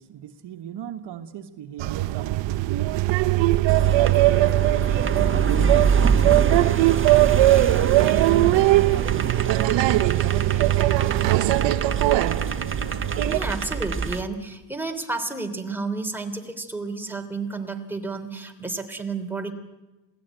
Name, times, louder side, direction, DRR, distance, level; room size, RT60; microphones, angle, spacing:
voice 1, 0.0-2.9 3.7-4.6 5.2-11.8, right 9 dB, 65° right, 7 dB, 1.4 m, -36 dB
sound 1, 1.8-13.4, right 17 dB, 80° right, 0.8 m, -20 dB
sound 2, 3.7-14.2, right 5 dB, 30° right, 1.6 m, -26 dB
voice 2, 13.2-19.5, right 3 dB, 5° right, 3 dB, 3.2 m, -31 dB
27.0 x 17.5 x 9.2 m, 1.1 s
cardioid pair, 110°, 44 cm